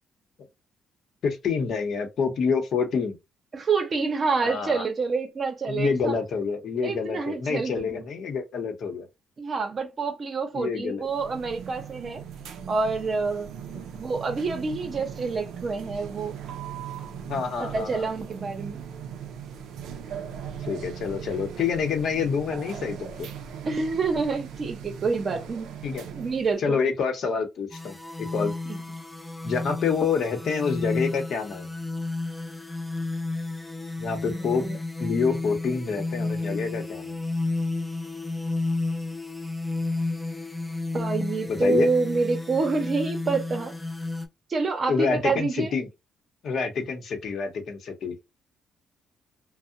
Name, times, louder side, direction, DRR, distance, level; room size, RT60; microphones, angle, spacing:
voice 1, 1.2-3.2 4.4-4.8 5.7-9.1 10.5-11.0 13.7-13.8 17.3-18.1 20.6-23.3 25.8-26.0 26.6-28.5 29.4-31.7 34.0-34.7 35.0-37.2 41.5-41.9 44.9-45.9 46.4-48.2, left 5 dB, 65° left, 0.8 m, -27 dB
voice 2, 3.5-6.1 6.8-8.0 9.4-12.2 12.7-13.5 13.9-16.4 17.6-18.8 23.7-25.8 26.1-26.8 28.7-28.8 34.2-34.8 40.9-43.8 44.5-45.7, right 4 dB, 40° right, 0.6 m, -27 dB
sound 1, 11.0-26.6, right 8 dB, 80° right, 0.4 m, -39 dB
sound 2, 27.7-44.3, left 2 dB, 10° left, 0.5 m, -31 dB
2.6 x 2.1 x 2.4 m
cardioid pair, 90°, 0 cm